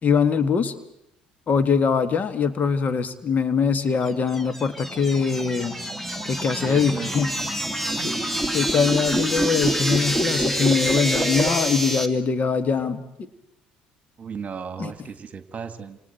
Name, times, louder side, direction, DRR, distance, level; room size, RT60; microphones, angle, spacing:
voice 1, 0.0-0.7 1.5-5.8 6.3-7.4 8.0-8.2 8.5-13.0 14.8-14.9, left 6 dB, 40° left, 10 dB, 2.0 m, -22 dB
sound 1, 4.1-12.1, right 1 dB, 5° left, 2.4 m, -26 dB
voice 2, 6.6-7.3 8.0-8.1 14.2-16.0, right 6 dB, 35° right, 10 dB, 2.1 m, -35 dB
28.5 x 27.5 x 4.6 m, 0.81 s
hypercardioid pair, 60°, 4 cm